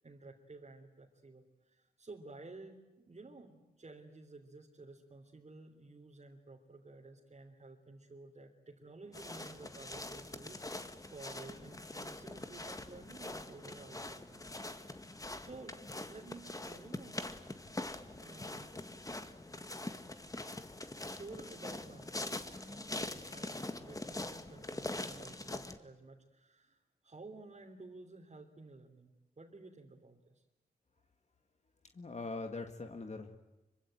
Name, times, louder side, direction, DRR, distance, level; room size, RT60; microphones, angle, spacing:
voice 1, 0.0-14.4 14.8-15.8 16.1-17.4 18.2-18.8 21.0-22.3 22.6-30.4, right 3 dB, 40° right, -1 dB, 3.4 m, -53 dB
sound 1, 9.1-25.8, left 2 dB, 20° left, 1.8 m, -43 dB
voice 2, 31.9-33.4, left 3 dB, 45° left, 5 dB, 1.9 m, -42 dB
26.0 x 24.5 x 9.1 m, 1.0 s
wide cardioid pair, 90°, 17 cm